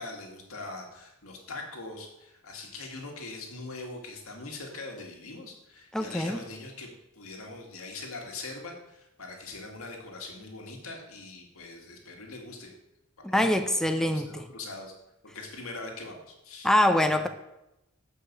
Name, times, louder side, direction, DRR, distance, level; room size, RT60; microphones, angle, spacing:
voice 1, 0.0-6.9 7.1-12.7 13.2-14.9 15.2-16.7, left 3 dB, 85° left, 1.9 m, -42 dB
voice 2, 5.9-6.4 13.2-14.4 16.6-17.3, left 1 dB, 5° left, 0.5 m, -24 dB
6.7 x 5.4 x 7.2 m
head